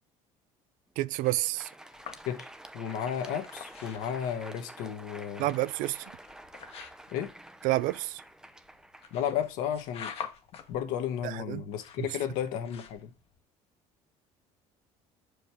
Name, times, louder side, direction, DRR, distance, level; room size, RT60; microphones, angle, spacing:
voice 1, 1.0-1.7 5.4-6.1 7.6-8.2 11.2-11.6, right 18 dB, 70° right, 0.4 m, -29 dB
Crowd, 1.1-10.0, right 1 dB, 5° right, 0.6 m, -49 dB
sound 1, 1.9-13.4, left 8 dB, 45° left, 1.1 m, -48 dB
voice 2, 2.7-5.5 7.1-7.3 9.1-10.1 10.7-13.1, left 9 dB, 80° left, 1.3 m, -33 dB
6.0 x 5.1 x 4.9 m
cardioid pair, 125°, 14 cm